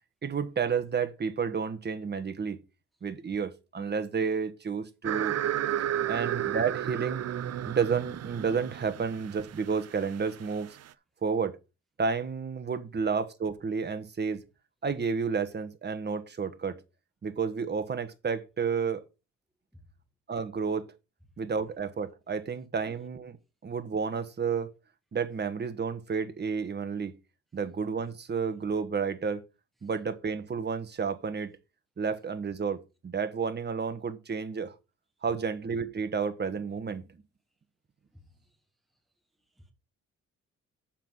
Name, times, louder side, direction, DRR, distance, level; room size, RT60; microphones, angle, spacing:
voice 1, 0.2-2.6 3.0-5.4 6.1-7.2 7.7-10.8 11.2-11.6 12.0-14.4 14.8-16.8 17.2-19.0 20.3-20.9 21.4-23.4 23.6-24.7 25.1-27.1 27.5-29.4 29.8-31.5 32.0-34.7 35.2-37.1, right 5 dB, 35° right, 1.4 m, -31 dB
sound 1, 5.0-10.9, right 11 dB, 55° right, 0.6 m, -33 dB
voice 2, 38.2-38.6 39.6-39.7, left 1 dB, ahead, 1.6 m, -56 dB
7.4 x 5.8 x 5.4 m
cardioid pair, 90°, 30 cm